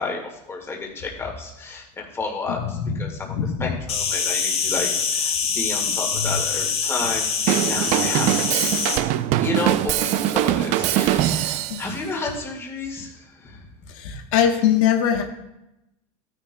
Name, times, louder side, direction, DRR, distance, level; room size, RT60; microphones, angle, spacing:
voice 1, 0.0-8.6 9.4-13.6, left 3 dB, 15° left, -1 dB, 1.7 m, -31 dB
voice 2, 2.5-3.8 5.9-6.4 11.7-11.8 13.9-15.2, left 9 dB, 75° left, 4 dB, 1.1 m, -23 dB
Insect, 3.9-9.0, left 6 dB, 35° left, 1.1 m, -24 dB
Drum kit / Drum, 7.5-11.9, right 13 dB, 45° right, 0.4 m, -22 dB
14.5 x 9.9 x 2.2 m, 0.88 s
cardioid pair, 155°, 17 cm